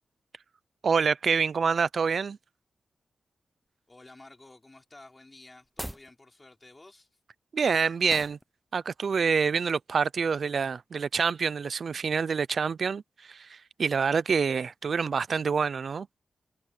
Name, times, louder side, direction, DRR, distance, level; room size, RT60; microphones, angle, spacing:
voice 1, 0.8-2.4 7.5-8.4 8.7-16.1, right 5 dB, 65° right, 0.5 m, -27 dB
voice 2, 3.9-7.2, left 2 dB, 25° left, 4.3 m, -52 dB
sound 1, 5.6-6.1 8.1-8.4, equal, 5° right, 0.6 m, -39 dB
wide cardioid pair, 110°, 0 cm